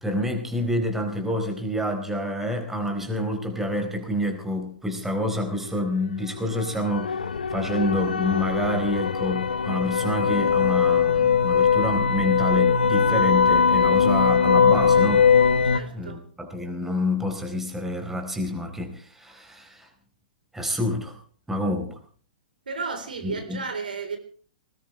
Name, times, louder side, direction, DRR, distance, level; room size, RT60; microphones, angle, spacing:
voice 1, 0.0-7.2 7.5-15.3 15.9-19.9 20.5-21.2 21.5-22.0 23.2-23.6, left 1 dB, 5° right, 4.1 m, -28 dB
sound 1, 6.0-15.8, left 6 dB, 80° left, 1.1 m, -21 dB
voice 2, 15.6-16.2 22.7-24.2, right 4 dB, 75° right, 3.9 m, -33 dB
20.0 x 19.5 x 3.3 m
figure-of-eight pair, 110°, 5 cm